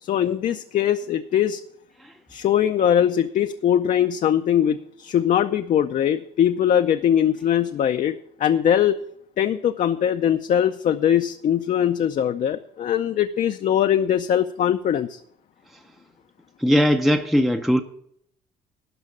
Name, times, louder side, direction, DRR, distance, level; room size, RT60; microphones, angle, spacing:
voice 1, 0.0-1.6 2.3-8.1 8.4-9.0 9.4-15.2, left 9 dB, 50° left, 7 dB, 0.5 m, -21 dB
voice 2, 16.6-17.8, equal, ahead, 7 dB, 0.5 m, -19 dB
12.0 x 5.1 x 8.4 m, 0.70 s
cardioid pair, 110°, 17 cm